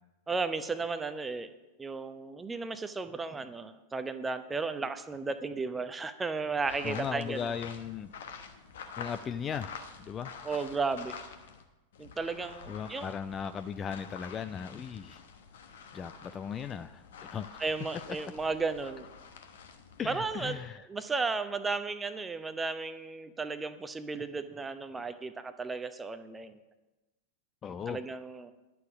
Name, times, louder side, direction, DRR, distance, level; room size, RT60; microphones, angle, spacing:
voice 1, 0.3-1.5 1.8-7.5 10.4-11.2 12.0-13.1 17.6-19.1 20.0-20.6 20.9-26.6 27.9-28.5, right 4 dB, 15° right, 10 dB, 0.7 m, -34 dB
sound 1, 6.6-11.6 11.9-20.5, left 6 dB, 60° left, 1.1 m, -48 dB
voice 2, 6.8-8.1 9.0-10.3 12.7-15.2 15.9-17.6 20.0-20.9 27.6-28.0, left 7 dB, 25° left, 11 dB, 0.4 m, -37 dB
11.0 x 6.9 x 7.1 m, 1.1 s
figure-of-eight pair, 90°, 0 cm